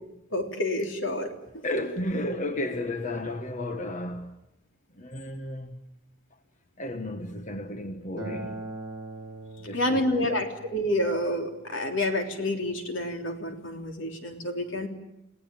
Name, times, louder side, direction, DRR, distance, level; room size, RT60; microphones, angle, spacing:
voice 1, 0.3-1.3 9.7-14.9, left 1 dB, 75° left, 3.5 m, -28 dB
voice 2, 1.6-4.4 5.0-5.8 6.8-8.6 9.6-10.0, left 1 dB, 40° left, 1.3 m, -33 dB
Acoustic guitar, 8.2-13.4, right 2 dB, 20° right, 7.1 m, -42 dB
29.5 x 18.0 x 9.0 m
head